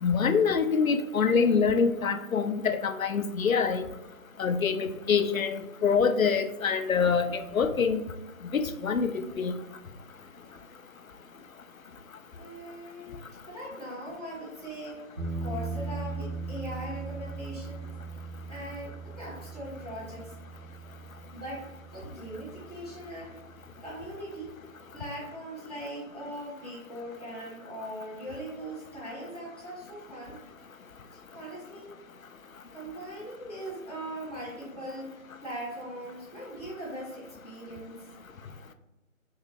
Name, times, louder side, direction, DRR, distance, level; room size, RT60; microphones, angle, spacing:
voice 1, 0.0-3.9 4.4-8.0 8.5-9.6, left 5 dB, 75° left, 9 dB, 0.5 m, -25 dB
voice 2, 12.3-15.0 15.4-17.9 18.5-20.3 21.3-21.6 21.9-23.3 23.8-24.5 24.9-30.4 31.1-31.9 32.7-38.0, right 1 dB, 30° left, -9 dB, 1.3 m, -40 dB
sound 1, 15.2-24.1, right 3 dB, 35° right, 0.8 m, -39 dB
4.5 x 3.2 x 2.3 m, 1.0 s
figure-of-eight pair, 160°, 41 cm